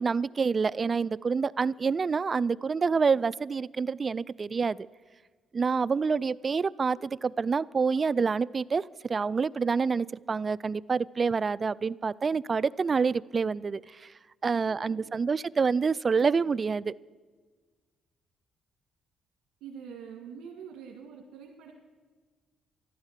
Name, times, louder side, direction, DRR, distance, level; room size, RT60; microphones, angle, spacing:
voice 1, 0.0-4.8 5.5-8.8 9.1-13.8 14.4-16.9, right 5 dB, 35° right, 20 dB, 0.3 m, -27 dB
voice 2, 14.7-15.1 19.6-21.7, right 7 dB, 85° right, 0 dB, 1.8 m, -45 dB
13.5 x 12.0 x 7.4 m, 1.4 s
cardioid pair, 90°, 0 cm